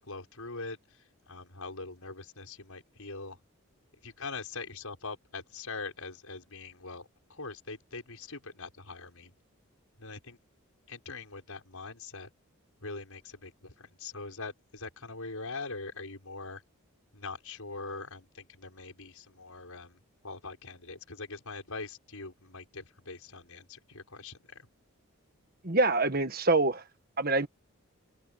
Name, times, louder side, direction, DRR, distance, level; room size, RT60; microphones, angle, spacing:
voice 1, 0.0-3.4 4.0-9.3 10.0-10.4 10.9-12.3 12.8-16.6 17.1-20.0 20.2-24.7, left 3 dB, 85° left, 5.9 m, -42 dB
voice 2, 25.6-26.8 27.2-27.5, right 3 dB, 45° right, 1.6 m, -25 dB
open air
head